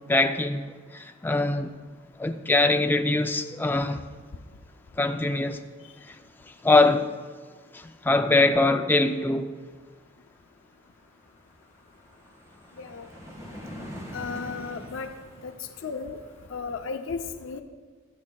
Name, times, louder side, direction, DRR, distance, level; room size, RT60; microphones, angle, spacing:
voice 1, 0.1-1.7 2.2-4.0 5.0-5.6 6.1-6.2 6.6-7.1 7.7-9.5, left 2 dB, 10° left, 0.4 m, -23 dB
sound 1, 10.4-10.5 10.7-16.5, equal, 15° right, 1.6 m, -44 dB
voice 2, 14.1-15.1 15.4-15.5 15.8-16.2 16.5-17.6, left 5 dB, 70° left, 0.5 m, -34 dB
22.0 x 7.4 x 2.3 m
head